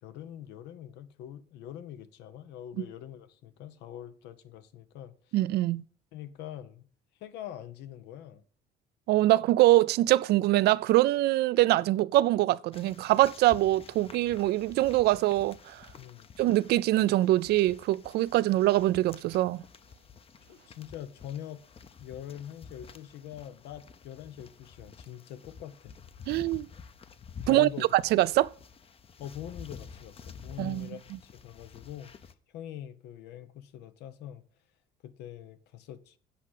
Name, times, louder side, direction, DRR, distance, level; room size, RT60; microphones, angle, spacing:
voice 1, 0.0-5.4 6.1-6.9 7.2-8.4 16.0-16.3 20.5-21.6 22.0-25.9 27.4-27.9 29.2-34.4 35.0-36.2, left 10 dB, 85° left, 0.9 m, -44 dB
voice 2, 5.3-5.8 9.1-15.8 16.4-19.6 26.3-26.7 27.5-28.5 30.6-30.9, right 16 dB, 75° right, 0.4 m, -24 dB
sound 1, 12.7-32.3, left 6 dB, 35° left, 0.7 m, -50 dB
8.6 x 5.0 x 7.4 m
cardioid pair, 110°, 17 cm